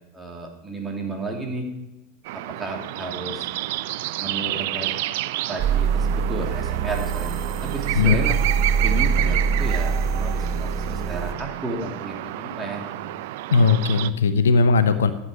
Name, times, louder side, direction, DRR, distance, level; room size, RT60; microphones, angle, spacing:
voice 1, 0.1-1.7 2.3-3.5 4.2-4.9 5.5-7.3 7.6-8.4 8.8-12.9, right 2 dB, 10° right, 1 dB, 2.9 m, -32 dB
sound 1, 2.2-14.1, right 15 dB, 65° right, 0.5 m, -30 dB
sound 2, 5.6-11.3, right 6 dB, 45° right, 1.6 m, -24 dB
voice 2, 13.5-15.1, left 4 dB, 85° left, 11 dB, 0.8 m, -18 dB
13.0 x 8.4 x 5.0 m, 1.0 s
hypercardioid pair, 90°, 0 cm